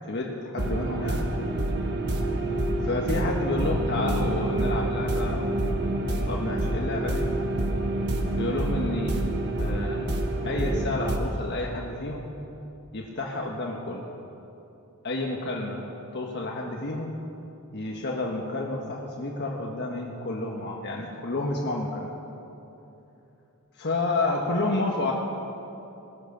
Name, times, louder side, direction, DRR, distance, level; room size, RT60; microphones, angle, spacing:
voice 1, 0.1-1.3 2.8-5.9 6.3-7.3 8.4-9.2 9.6-10.1 10.4-12.3 12.9-14.0 15.0-15.9 16.1-17.1 17.7-22.1 23.8-25.1, left 2 dB, 50° left, -1 dB, 1.3 m, -30 dB
sound 1, 0.6-11.2, right 1 dB, 50° right, 1.4 m, -27 dB
20.0 x 10.5 x 6.8 m, 3.0 s
head